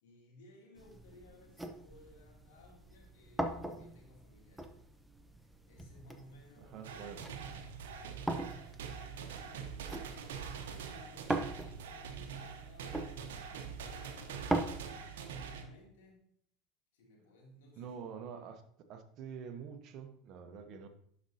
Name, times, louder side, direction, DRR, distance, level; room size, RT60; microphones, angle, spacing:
voice 1, 0.0-4.9 5.6-6.9 7.8-9.8 10.2-13.3 13.8-16.2 16.9-17.9 20.4-20.7, left 1 dB, 75° left, 2.8 m, -60 dB
sound 1, 0.8-14.6, right 1 dB, 5° right, 0.7 m, -42 dB
voice 2, 6.6-7.3 17.8-18.6 18.9-20.9, right 7 dB, 50° right, 0.9 m, -46 dB
sound 2, 6.8-15.6, right 6 dB, 80° right, 0.9 m, -44 dB
11.0 x 5.2 x 2.8 m
hypercardioid pair, 95°, 0 cm